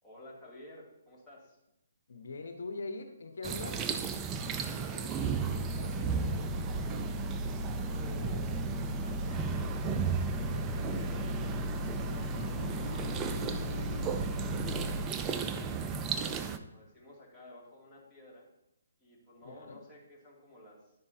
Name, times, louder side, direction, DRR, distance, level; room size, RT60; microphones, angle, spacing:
voice 1, 0.0-1.6 4.5-7.2 7.6-9.7 10.3-11.3 12.7-16.3 16.6-18.5 19.0-20.9, equal, 5° left, -9 dB, 2.4 m, -53 dB
voice 2, 2.1-3.8 19.4-19.8, left 3 dB, 70° left, 6 dB, 1.0 m, -41 dB
sound 1, 3.4-16.6, right 6 dB, 20° right, 0.4 m, -35 dB
sound 2, 5.1-15.1, left 2 dB, 45° left, 1.2 m, -37 dB
11.5 x 5.4 x 2.7 m, 0.86 s
hypercardioid pair, 150°, 0 cm